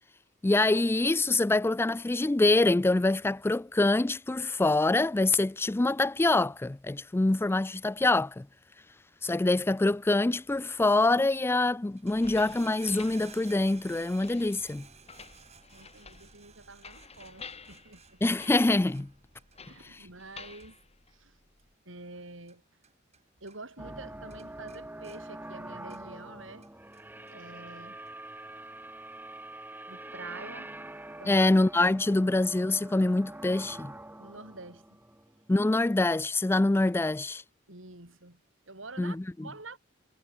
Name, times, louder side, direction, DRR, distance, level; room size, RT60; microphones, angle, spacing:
voice 1, 0.4-8.5 9.2-14.9 18.2-19.1 31.3-33.9 35.5-37.4 39.0-39.2, left 2 dB, 10° left, 0.3 m, -25 dB
sound 1, 11.8-23.2 23.5-24.0 24.3-26.3 26.6-27.4 28.1-28.2, right 6 dB, 35° right, 6.2 m, -55 dB
sound 2, 12.1-21.7, left 5 dB, 30° left, 6.9 m, -51 dB
voice 2, 15.7-18.2 19.6-20.8 21.1-21.4 21.9-22.6 23.4-26.6 27.3-28.1 29.9-30.7 31.2-31.5 34.2-35.0 37.7-39.8, right 3 dB, 70° right, 5.6 m, -47 dB
sound 3, 23.8-35.9, right 1 dB, 10° right, 1.5 m, -45 dB
head